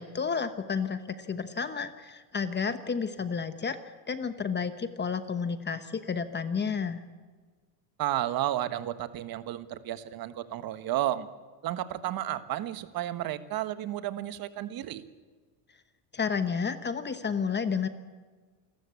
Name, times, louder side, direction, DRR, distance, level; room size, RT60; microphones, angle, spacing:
voice 1, 0.0-3.8 4.1-7.0 16.1-17.9, left 6 dB, 20° left, 10 dB, 1.1 m, -31 dB
voice 2, 8.0-11.3 11.6-15.0, right 13 dB, 50° right, 12 dB, 1.5 m, -32 dB
28.0 x 13.5 x 8.4 m, 1.5 s
cardioid pair, 125°, 47 cm